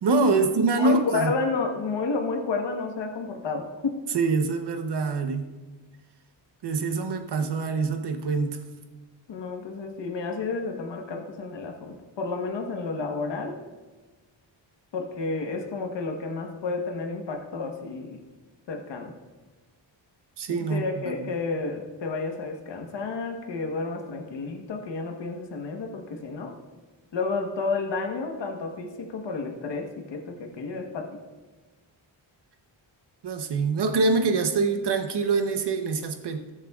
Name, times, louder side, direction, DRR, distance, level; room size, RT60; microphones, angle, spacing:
voice 1, 0.0-1.3 4.1-5.5 6.6-8.6 20.4-21.3 33.2-36.4, right 3 dB, 60° right, 7 dB, 0.9 m, -25 dB
voice 2, 0.8-4.0 9.3-13.6 14.9-18.2 18.7-19.1 20.5-26.5 27.1-31.0, left 4 dB, 65° left, 3 dB, 1.3 m, -31 dB
19.0 x 7.4 x 2.4 m, 1.2 s
wide cardioid pair, 160°, 45 cm